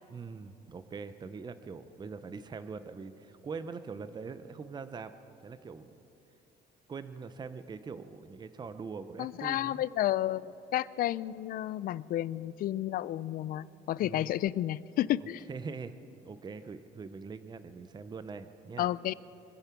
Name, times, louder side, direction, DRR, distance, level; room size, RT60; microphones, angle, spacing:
voice 1, 0.1-5.1 5.4-6.0 6.9-9.8 14.0-14.3 15.5-15.9 16.2-18.9, right 5 dB, 25° right, 12 dB, 0.7 m, -42 dB
voice 2, 9.2-15.4 18.8-19.1, left 13 dB, 60° left, 19 dB, 0.4 m, -31 dB
24.0 x 8.9 x 5.9 m, 2.8 s
cardioid pair, 110°, 17 cm